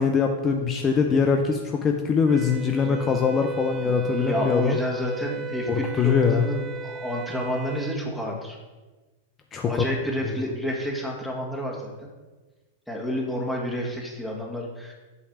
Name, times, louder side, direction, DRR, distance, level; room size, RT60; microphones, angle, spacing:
voice 1, 0.0-4.8 5.7-6.5 9.5-9.7 10.2-10.3, left 6 dB, 25° left, 3 dB, 0.6 m, -23 dB
Wind instrument woodwind instrument, 2.3-8.0, right 3 dB, 30° right, 0.4 m, -35 dB
voice 2, 3.8-8.6 9.6-12.1 12.9-14.9, equal, 5° left, -2 dB, 1.6 m, -30 dB
8.3 x 3.2 x 5.8 m, 1.2 s
figure-of-eight pair, 95°, 0 cm